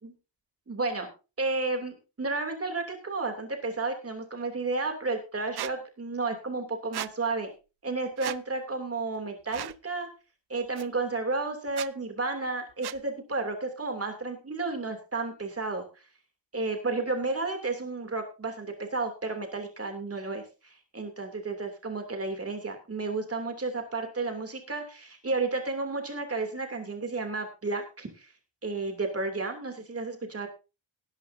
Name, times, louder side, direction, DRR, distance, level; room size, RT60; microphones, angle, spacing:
voice 1, 0.7-1.1 1.4-7.5 7.8-10.1 10.5-16.0 16.5-28.3 28.6-30.5, right 3 dB, 30° right, 4 dB, 2.9 m, -32 dB
Squeak, 5.6-5.7 6.9-7.1 8.2-8.4 9.5-9.8 10.8-10.9 11.7-11.9 12.8-13.0, right 12 dB, 55° right, 0.5 m, -36 dB
19.0 x 10.5 x 2.7 m, 0.30 s
wide cardioid pair, 155°, 48 cm